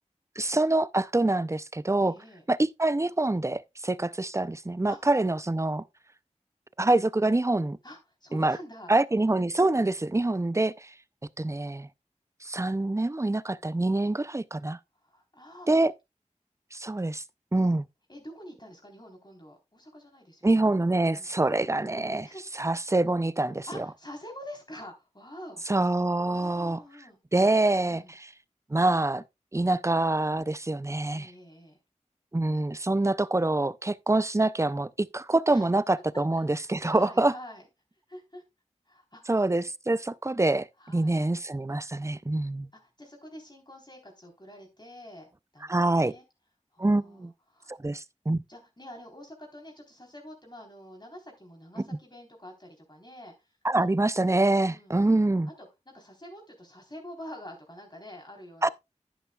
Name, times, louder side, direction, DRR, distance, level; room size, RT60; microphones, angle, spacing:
voice 1, 0.4-2.1 2.5-5.8 6.8-7.8 8.3-8.6 8.9-10.9 11.4-11.9 12.4-14.8 15.7-15.9 16.7-17.2 17.5-17.9 20.4-22.3 22.6-23.8 25.7-26.8 27.3-28.0 28.7-29.2 29.5-31.3 32.3-37.3 39.3-40.7 40.9-42.7 45.7-46.1 46.8-47.3 47.7-48.4 53.6-55.5 58.6-58.7, right 2 dB, 25° right, 0.5 m, -25 dB
voice 2, 2.0-2.4 4.9-5.0 7.8-8.9 15.0-15.7 18.1-20.7 21.1-21.3 22.2-22.4 23.7-25.6 26.3-27.2 27.8-28.2 31.1-31.8 35.5-35.7 36.1-37.7 38.1-38.4 38.9-39.3 40.8-41.2 42.8-45.3 45.5-46.2 46.7-47.8 48.5-53.5 54.6-54.9 55.6-58.7, equal, 35° left, 3.9 m, -47 dB
10.5 x 10.0 x 2.4 m
wide cardioid pair, 40°, 13 cm